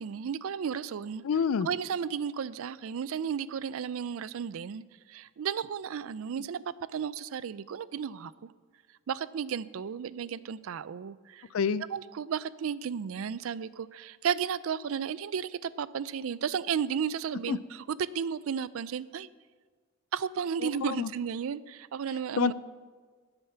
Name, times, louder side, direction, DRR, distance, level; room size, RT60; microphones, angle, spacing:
voice 1, 0.0-1.2 1.6-6.6 6.9-8.5 9.1-11.5 11.9-19.3 20.1-22.5, right 7 dB, 80° right, 18 dB, 0.4 m, -33 dB
voice 2, 1.2-1.7 11.5-11.8 17.5-17.6 20.6-21.1 22.4-22.5, left 6 dB, 85° left, 18 dB, 0.4 m, -27 dB
10.0 x 8.0 x 6.8 m, 1.5 s
head